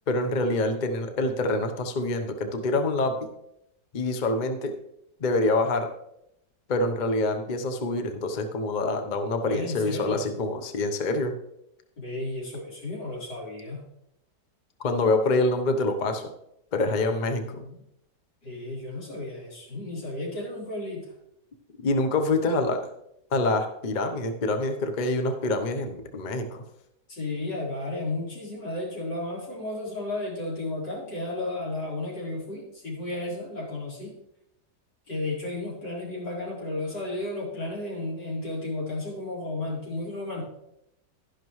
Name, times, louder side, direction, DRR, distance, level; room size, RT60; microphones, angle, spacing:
voice 1, 0.1-3.1 3.9-4.7 5.2-5.9 6.7-11.3 14.8-16.3 16.7-17.6 21.8-22.8 23.3-26.6, left 2 dB, 35° left, 6 dB, 0.7 m, -26 dB
voice 2, 9.4-10.3 12.0-13.8 16.8-17.7 18.4-21.1 27.1-34.1 35.1-40.4, left 2 dB, 90° left, -6 dB, 4.7 m, -33 dB
12.0 x 11.0 x 3.1 m, 0.81 s
omnidirectional pair, 1.9 m